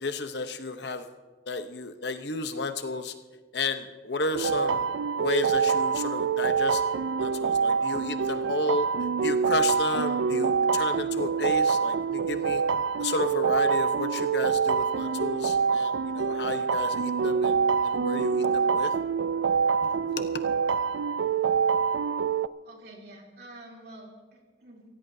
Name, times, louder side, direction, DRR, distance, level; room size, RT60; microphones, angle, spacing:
voice 1, 0.0-1.1 1.5-3.1 3.5-4.9 5.2-6.8 7.2-8.9 9.2-12.6 13.0-17.6 17.8-18.9 19.8-20.4, left 3 dB, 70° left, 8 dB, 0.9 m, -32 dB
sound 1, 4.3-22.5, right 6 dB, 85° right, 0.4 m, -26 dB
voice 2, 22.6-24.8, right 1 dB, 60° right, -2 dB, 3.3 m, -48 dB
25.0 x 16.0 x 2.8 m, 1.3 s
head